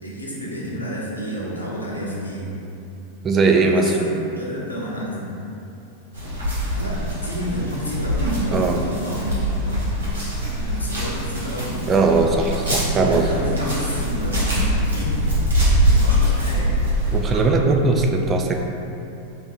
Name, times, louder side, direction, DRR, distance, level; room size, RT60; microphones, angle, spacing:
voice 1, 0.0-2.6 3.4-4.1 4.3-5.3 6.7-10.0 10.6-11.8 12.9-15.3 15.8-16.7, equal, 80° left, -5 dB, 0.8 m, -30 dB
voice 2, 3.2-3.9 8.5-8.8 11.9-13.3 17.1-18.6, right 3 dB, 25° right, 3 dB, 0.3 m, -19 dB
sound 1, 6.1-17.4, equal, 70° right, 1.2 m, -23 dB
3.4 x 2.7 x 4.4 m, 2.8 s
figure-of-eight pair, 90°, 0 cm